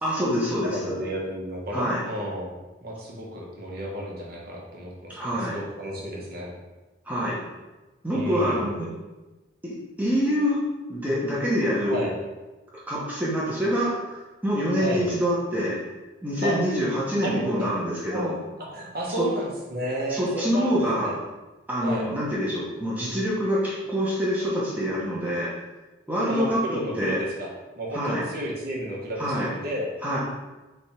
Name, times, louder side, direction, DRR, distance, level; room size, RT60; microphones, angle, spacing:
voice 1, 0.0-1.0 1.7-2.0 5.1-5.6 7.1-7.4 8.0-8.9 9.6-10.6 10.9-12.0 12.9-15.8 16.2-18.3 19.2-19.3 20.1-21.1 21.7-25.6 26.1-26.6 27.0-27.2 27.9-28.3 29.2-29.5 30.0-30.2, equal, 10° right, -7 dB, 0.9 m, -26 dB
voice 2, 0.6-2.5 2.8-6.5 8.1-8.7 11.9-12.1 14.8-15.0 16.4-16.6 17.2-17.8 18.1-18.4 18.7-21.1 21.8-22.1 26.3-27.5 27.8-29.9, right 1 dB, 50° right, -3 dB, 1.0 m, -32 dB
3.5 x 3.4 x 4.2 m, 1.1 s
head